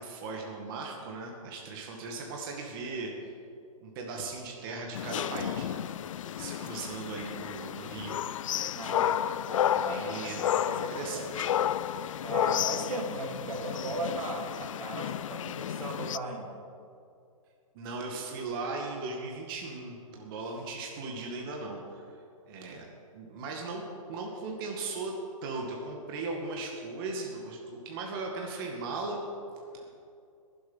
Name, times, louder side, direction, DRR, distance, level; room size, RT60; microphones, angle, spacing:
voice 1, 0.0-3.3 3.8-5.8 6.4-8.2 9.7-11.5 17.7-22.1 22.4-22.9 23.1-23.8 24.1-25.1 25.4-29.2 29.7-29.8, right 3 dB, 40° right, 0 dB, 2.0 m, -38 dB
sound 1, 4.9-16.2, left 10 dB, 65° left, 0.5 m, -32 dB
voice 2, 8.7-9.3 9.8-10.3 10.7-11.5 12.2-16.6, right 2 dB, 75° right, 1 dB, 3.0 m, -37 dB
21.0 x 8.1 x 5.6 m, 2.4 s
hypercardioid pair, 145°, 18 cm